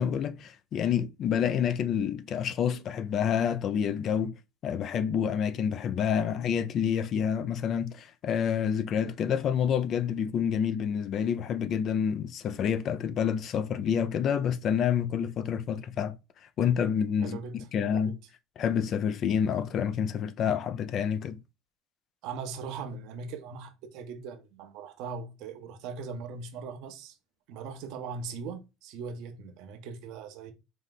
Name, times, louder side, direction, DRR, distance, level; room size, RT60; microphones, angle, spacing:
voice 1, 0.0-4.4 4.6-16.2 16.6-17.4 17.7-18.2 18.6-21.4, left 8 dB, 45° left, 0.5 m, -28 dB
voice 2, 17.2-18.2 22.2-27.2 27.5-30.5, right 5 dB, 70° right, 0.8 m, -40 dB
4.9 x 2.1 x 3.8 m
supercardioid pair, 115°, 0 cm